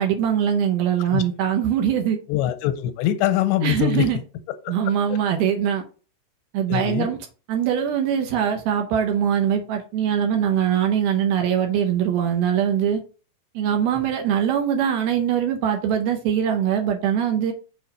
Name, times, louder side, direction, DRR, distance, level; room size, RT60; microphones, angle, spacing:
voice 1, 0.0-2.2 3.6-4.2 4.7-5.8 6.5-7.2 7.5-13.0 13.6-17.5, right 9 dB, 75° right, 2.4 m, -22 dB
voice 2, 2.3-4.1 4.5-4.7 5.1-5.2 6.7-7.1, left 12 dB, 85° left, 2.8 m, -23 dB
7.0 x 4.5 x 4.1 m
omnidirectional pair, 5.0 m